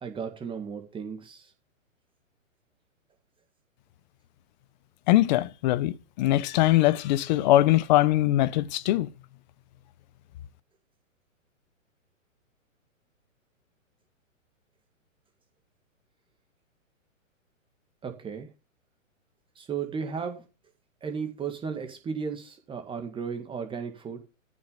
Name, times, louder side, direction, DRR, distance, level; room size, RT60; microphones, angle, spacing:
voice 1, 0.0-1.5 18.0-18.5 19.6-20.4 21.0-24.2, right 6 dB, 15° right, 1.8 m, -35 dB
voice 2, 5.1-9.1, left 15 dB, 35° left, 0.8 m, -22 dB
14.0 x 6.3 x 5.5 m
hypercardioid pair, 140°, 40 cm